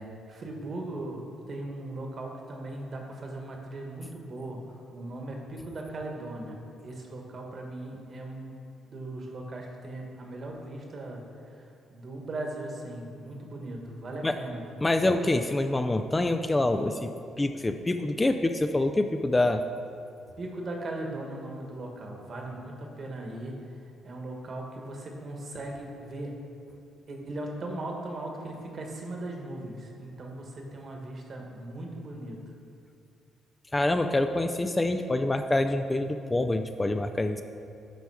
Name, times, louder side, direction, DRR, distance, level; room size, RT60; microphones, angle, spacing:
voice 1, 0.0-6.6 6.8-8.6 8.8-14.6 20.4-23.5 24.0-26.3 27.1-32.4, right 2 dB, 45° right, 1 dB, 1.3 m, -38 dB
voice 2, 14.8-17.1 17.4-19.6 33.7-37.4, left 2 dB, 20° left, 7 dB, 0.3 m, -26 dB
10.0 x 3.5 x 4.7 m, 2.5 s
cardioid pair, 90°, 0 cm